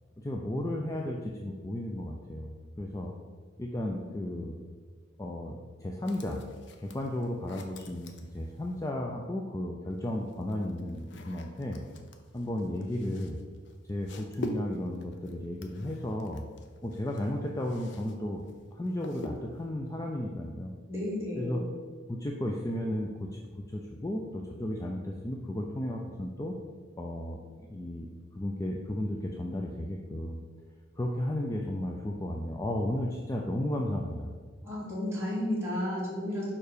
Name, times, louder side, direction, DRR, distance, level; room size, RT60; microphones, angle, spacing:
voice 1, 0.2-3.1 3.6-4.5 5.2-6.4 6.8-11.8 12.3-13.4 13.9-16.4 16.8-18.4 18.7-20.7 21.4-21.6 22.1-23.3 23.7-26.6 27.0-28.1 28.4-30.4 31.0-34.3, left 1 dB, 15° left, -1 dB, 0.4 m, -34 dB
sound 1, 6.0-8.9 9.9-18.2 18.4-19.7, left 1 dB, 60° left, 0.6 m, -45 dB
voice 2, 20.9-21.6 34.6-36.5, left 1 dB, 15° right, -8 dB, 2.0 m, -32 dB
5.6 x 4.6 x 4.9 m, 1.5 s
head